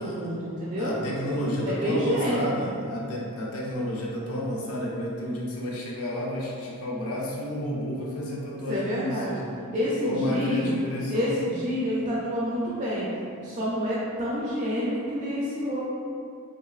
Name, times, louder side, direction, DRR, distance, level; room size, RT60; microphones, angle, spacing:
voice 1, 0.0-0.9 1.6-2.7 8.7-9.4 9.7-10.7 11.1-13.1 13.4-15.8, equal, 30° right, -7 dB, 0.4 m, -28 dB
voice 2, 0.8-9.4 9.9-11.3, left 1 dB, 75° left, -4 dB, 0.5 m, -31 dB
3.1 x 2.4 x 2.3 m, 2.5 s
head